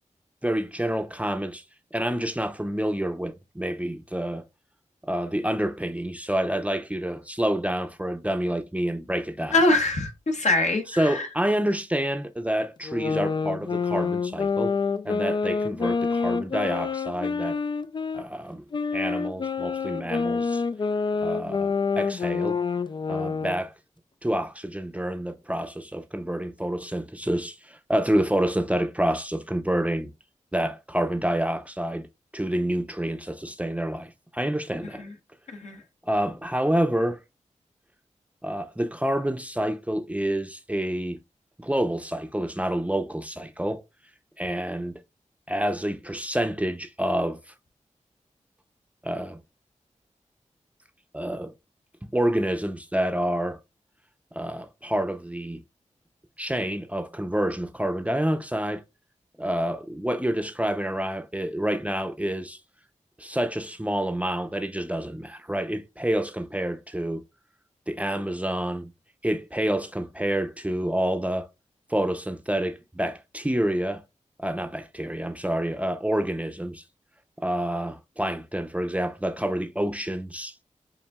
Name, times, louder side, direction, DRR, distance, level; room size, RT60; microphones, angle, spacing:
voice 1, 0.4-1.6 1.9-4.4 5.0-9.5 11.0-14.7 15.0-17.6 18.1-18.6 18.9-20.6 21.2-22.6 23.1-23.7 24.2-30.1 30.5-32.1 32.3-35.0 36.1-37.2 38.4-41.2 41.6-43.8 44.4-45.0 45.5-47.4 49.0-49.4 51.1-51.5 52.1-53.6 54.3-55.6 56.4-58.8 59.4-62.6 63.2-67.2 67.9-68.9 69.2-71.5 71.9-74.0 74.4-76.8 77.4-80.5, right 1 dB, 10° right, 0.6 m, -28 dB
voice 2, 9.5-11.3 35.0-35.1 35.5-35.8, left 2 dB, 60° left, 1.1 m, -23 dB
sound 1, 12.8-18.2 18.7-23.6, left 5 dB, 35° left, 0.3 m, -27 dB
7.1 x 2.7 x 2.3 m
cardioid pair, 45°, 13 cm